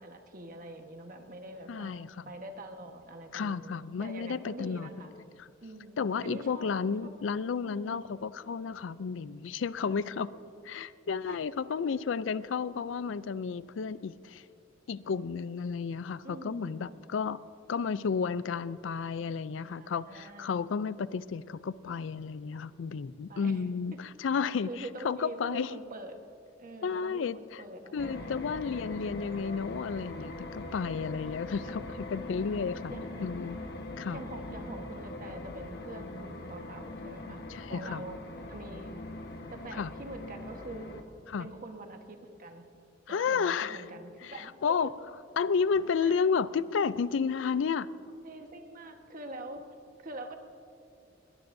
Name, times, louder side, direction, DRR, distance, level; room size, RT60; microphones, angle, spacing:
voice 1, 0.0-2.0 2.3-5.1 5.6-6.7 7.0-7.1 7.6-8.0 9.8-10.3 11.2-11.4 11.8-12.0 16.2-17.0 19.6-20.5 23.3-23.6 24.3-26.2 26.6-28.3 31.6-32.0 32.9-33.4 34.1-37.4 37.7-38.2 38.5-38.9 39.5-40.9 41.4-42.7 43.1-44.8 46.0-46.2 48.1-49.6 50.0-50.3, right 2 dB, 45° right, 4 dB, 1.3 m, -45 dB
voice 2, 1.7-2.2 3.3-4.9 5.4-5.5 6.0-10.3 10.7-14.4 14.9-17.4 17.7-25.7 26.8-27.6 27.9-32.9 33.2-33.6 34.0-34.2 37.5-38.0 39.7-39.9 41.3-41.5 43.1-43.8 44.2-44.3 44.6-44.9 45.4-47.9, left 5 dB, 75° left, 17 dB, 0.4 m, -32 dB
sound 1, 28.0-41.0, left 2 dB, 60° left, 1.2 m, -42 dB
21.0 x 18.5 x 2.7 m, 2.5 s
head